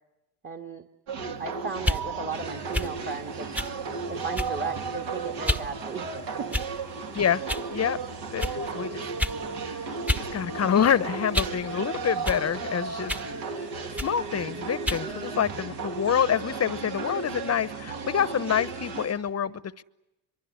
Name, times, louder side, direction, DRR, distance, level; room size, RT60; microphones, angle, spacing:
voice 1, 0.4-0.8 1.4-3.5 4.1-6.5, right 4 dB, 25° right, 3 dB, 1.8 m, -36 dB
sound 1, 1.1-19.1, right 4 dB, 60° right, 2.4 m, -35 dB
sound 2, 1.8-2.0 2.7-2.9 3.5-3.7 4.3-4.7 5.4-5.7 6.5-6.9 7.5-7.7 8.4-8.6 9.2-9.4 10.1-10.3 10.6-11.6 12.2-12.4 13.1-13.3 14.0-14.2 14.8-15.1, left 1 dB, 5° right, 1.1 m, -29 dB
sound 3, 2.3-19.1, right 5 dB, 40° right, 6.0 m, -48 dB
voice 2, 7.7-8.0 8.3-9.0 9.6-9.9 10.3-13.2 14.0-19.8, left 8 dB, 30° left, 18 dB, 1.0 m, -27 dB
24.5 x 23.5 x 9.7 m, 0.93 s
hypercardioid pair, 70°, 47 cm